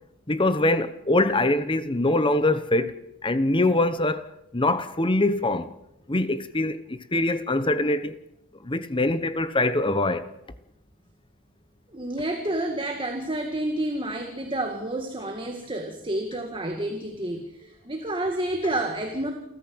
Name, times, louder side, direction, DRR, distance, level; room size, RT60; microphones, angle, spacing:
voice 1, 0.3-2.9 3.2-5.7 6.1-8.2 8.6-10.3, left 2 dB, 25° left, 1.1 m, -23 dB
voice 2, 11.9-19.3, right 1 dB, 25° right, 2.0 m, -29 dB
29.0 x 13.5 x 8.0 m
head